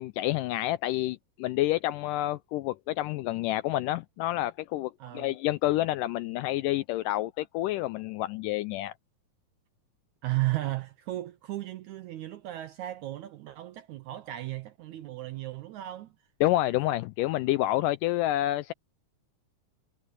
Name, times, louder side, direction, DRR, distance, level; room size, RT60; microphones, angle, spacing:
voice 1, 0.0-8.9 16.4-18.7, left 15 dB, 80° left, 1.9 m, -28 dB
voice 2, 5.0-5.3 10.2-16.1, right 17 dB, 75° right, 1.7 m, -35 dB
omnidirectional pair, 4.2 m